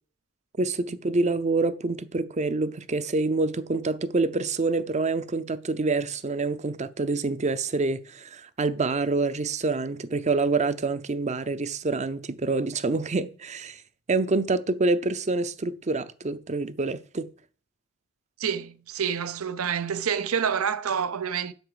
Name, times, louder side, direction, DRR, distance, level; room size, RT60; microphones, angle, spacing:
voice 1, 0.6-13.8 14.1-17.3, right 3 dB, 35° right, 0.6 m, -26 dB
voice 2, 18.4-21.5, right 7 dB, 85° right, 0.7 m, -28 dB
7.9 x 5.9 x 6.9 m
head